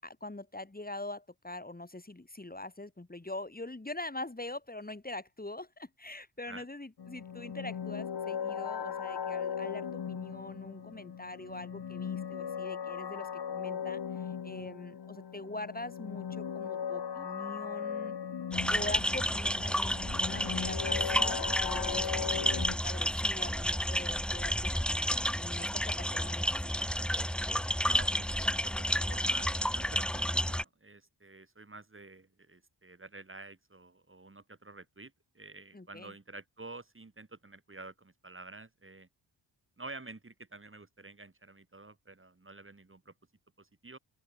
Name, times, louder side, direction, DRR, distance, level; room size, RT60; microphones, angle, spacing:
voice 1, 0.0-18.1 18.7-26.7 35.7-36.1, left 2 dB, 20° left, 7.9 m, -43 dB
sound 1, 7.0-22.8, left 7 dB, 55° left, 1.6 m, -38 dB
sound 2, 18.5-30.6, equal, ahead, 1.0 m, -31 dB
voice 2, 27.8-39.1 39.8-43.1 43.6-44.0, right 3 dB, 25° right, 7.1 m, -49 dB
open air
wide cardioid pair, 105°, 46 cm